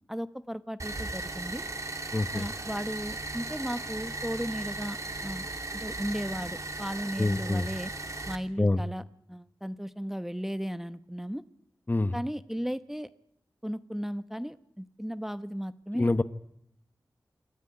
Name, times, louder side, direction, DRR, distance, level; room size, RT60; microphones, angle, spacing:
voice 1, 0.1-1.6 2.3-5.5 5.7-7.9 8.3-9.0 9.3-11.4 12.1-13.1 13.6-16.1, equal, 5° right, 12 dB, 1.0 m, -35 dB
sound 1, 0.8-8.4, right 2 dB, 50° right, 2.3 m, -37 dB
voice 2, 2.1-2.5 7.2-7.6 8.6-8.8 11.9-12.2 15.9-16.2, left 2 dB, 25° left, 12 dB, 1.0 m, -26 dB
27.0 x 14.0 x 10.0 m, 0.74 s
wide cardioid pair, 75°, 7 cm